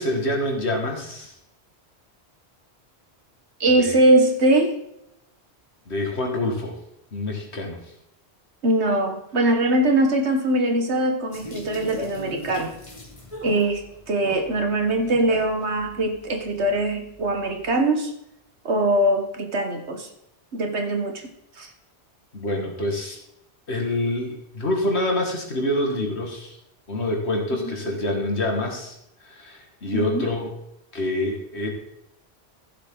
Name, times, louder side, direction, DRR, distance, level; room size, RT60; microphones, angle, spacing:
voice 1, 0.0-1.4 3.8-4.0 5.9-6.7 7.1-7.9 22.3-23.2 23.7-26.6 26.9-30.5 30.9-31.7, left 1 dB, 75° left, 1 dB, 2.5 m, -26 dB
voice 2, 3.6-4.8 8.6-12.7 13.4-18.1 18.7-20.1 20.5-21.2 21.6-21.7 27.5-27.7 29.9-30.3, right 1 dB, 85° right, 4 dB, 1.8 m, -22 dB
sound 1, 11.3-17.7, left 2 dB, 30° left, 1.8 m, -42 dB
sound 2, 13.3-14.6 15.0-15.4, equal, 10° right, 2.5 m, -40 dB
15.0 x 7.6 x 4.0 m, 0.78 s
omnidirectional pair, 1.1 m